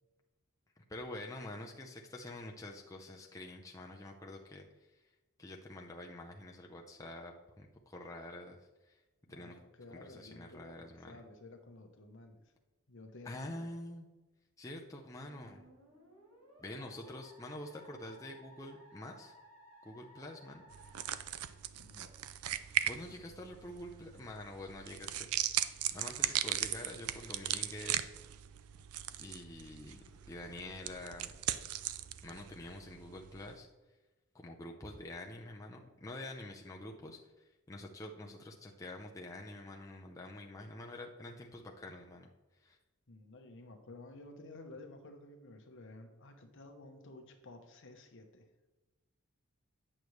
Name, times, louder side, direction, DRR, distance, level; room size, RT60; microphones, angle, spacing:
voice 1, 0.8-5.0 5.4-9.0 9.3-9.6 9.9-11.2 13.2-14.1 14.6-15.7 16.6-19.3 19.8-20.6 22.8-28.1 29.2-31.3 32.2-33.7 34.3-42.3 42.6-42.8, left 1 dB, 15° left, 0 dB, 0.6 m, -47 dB
voice 2, 9.3-12.4 12.9-13.7 16.7-17.2 21.7-22.1 43.1-48.5, left 2 dB, 60° left, 5 dB, 1.0 m, -53 dB
Musical instrument, 15.2-22.1, equal, 65° right, 2.9 m, -59 dB
sound 1, 20.7-33.6, right 12 dB, 80° right, 0.4 m, -38 dB
8.8 x 6.4 x 3.2 m, 1.1 s
head